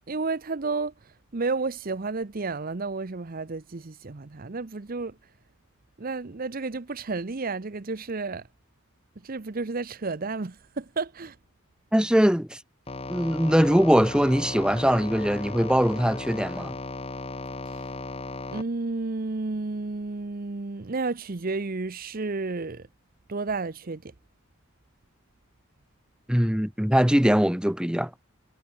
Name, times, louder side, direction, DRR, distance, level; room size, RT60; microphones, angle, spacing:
voice 1, 0.1-0.9 1.3-5.2 6.0-8.4 9.2-11.4 18.5-22.9 23.3-24.1, right 3 dB, 45° right, 0.8 m, -31 dB
voice 2, 11.9-12.6 13.1-16.7 26.3-28.1, equal, 5° right, 1.0 m, -22 dB
sound 1, 12.9-18.6, left 2 dB, 30° left, 1.4 m, -36 dB
head